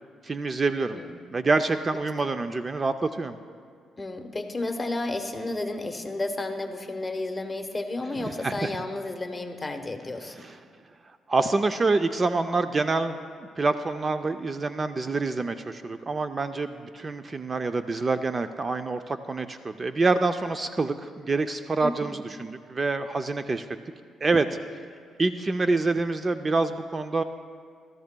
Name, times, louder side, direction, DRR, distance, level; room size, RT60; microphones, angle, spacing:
voice 1, 0.2-1.0 1.3-3.4 8.2-8.7 10.4-10.6 11.3-13.2 13.6-23.7 24.2-24.5 25.2-27.2, right 3 dB, 30° right, 9 dB, 0.4 m, -26 dB
voice 2, 4.0-10.4 21.8-22.1, left 2 dB, 20° left, 5 dB, 1.0 m, -32 dB
16.0 x 13.5 x 2.2 m, 2.1 s
cardioid pair, 90°, 0 cm